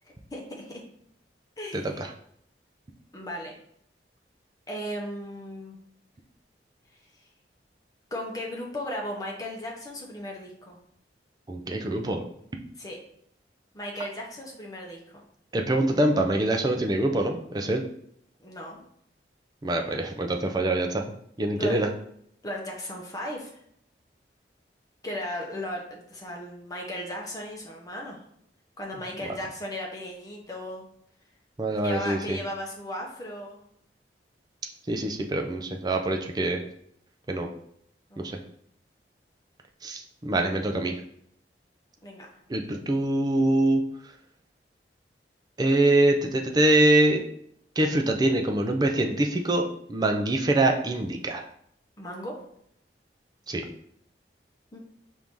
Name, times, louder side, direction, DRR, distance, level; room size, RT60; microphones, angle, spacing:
voice 1, 0.3-0.8 1.6-2.1 3.1-3.5 4.7-5.8 8.1-10.8 12.8-13.0 13.7-15.2 18.4-18.8 21.6-21.8 22.4-23.6 25.0-28.2 28.8-30.8 31.8-33.6 38.1-38.5 42.0-42.3 52.0-52.4 54.7-54.8, equal, 20° left, -1 dB, 0.8 m, -36 dB
voice 2, 1.7-2.1 11.5-12.2 15.5-17.8 19.6-21.0 21.4-21.9 29.3-29.4 31.6-32.4 34.9-36.6 37.3-37.5 38.2-38.4 39.8-41.0 42.5-43.8 45.6-47.2 47.8-49.6 49.9-51.4 53.5-53.6, right 1 dB, 25° right, 3 dB, 0.4 m, -24 dB
4.5 x 2.6 x 3.6 m, 0.70 s
head